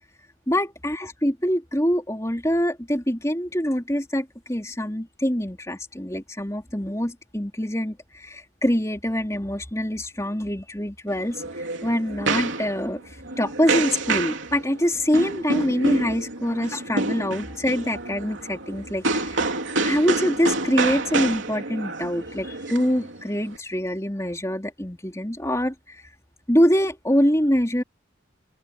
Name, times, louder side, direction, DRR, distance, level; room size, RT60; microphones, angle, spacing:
voice 1, 0.5-11.4 11.8-19.6 19.8-26.1 26.5-27.8, equal, 15° left, 3.6 m, -25 dB
sound 1, 11.1-23.6, right 3 dB, 80° right, 3.1 m, -28 dB
head